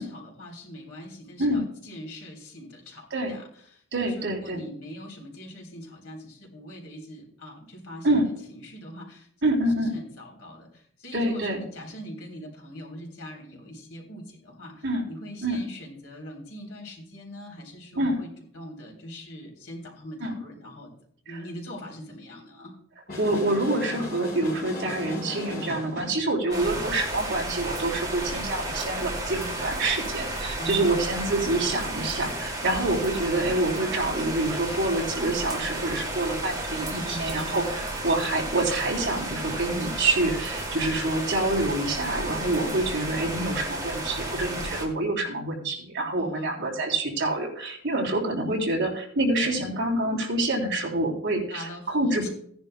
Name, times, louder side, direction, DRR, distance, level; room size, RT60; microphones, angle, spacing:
voice 1, 0.0-9.3 9.6-20.9 21.2-22.8 26.5-26.9 30.6-31.0 36.9-37.7 46.2-46.5 49.4-49.6 51.5-52.3, equal, 85° left, 0 dB, 3.5 m, -42 dB
voice 2, 3.9-4.6 8.0-8.3 9.4-9.9 11.1-11.6 14.8-15.0 15.4-15.6 18.0-18.2 20.2-20.3 21.3-21.4 23.2-52.3, right 2 dB, 55° right, -1 dB, 3.2 m, -27 dB
sound 1, 23.1-26.2, left 2 dB, 45° left, 4.7 m, -36 dB
sound 2, 26.5-44.9, right 1 dB, 15° right, 2.2 m, -33 dB
17.0 x 10.5 x 2.2 m, 0.63 s
head